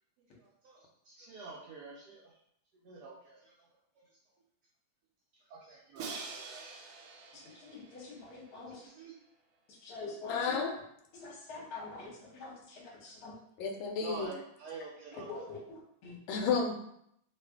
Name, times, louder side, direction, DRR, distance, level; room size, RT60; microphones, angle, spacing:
voice 1, 0.4-2.3 2.8-3.5 5.5-6.6 8.8-9.1 11.5-11.6 14.0-15.4, right 4 dB, 70° right, -3 dB, 1.0 m, -47 dB
Crash cymbal, 6.0-8.9, right 4 dB, 90° right, 1.4 m, -46 dB
voice 2, 7.3-8.9 9.7-10.6 11.1-13.3 15.1-16.2, left 3 dB, 55° left, -3 dB, 1.3 m, -45 dB
voice 3, 10.3-10.7 13.6-14.3 16.3-16.7, left 5 dB, 80° left, 3 dB, 1.3 m, -31 dB
3.1 x 2.4 x 3.3 m, 0.72 s
omnidirectional pair, 2.2 m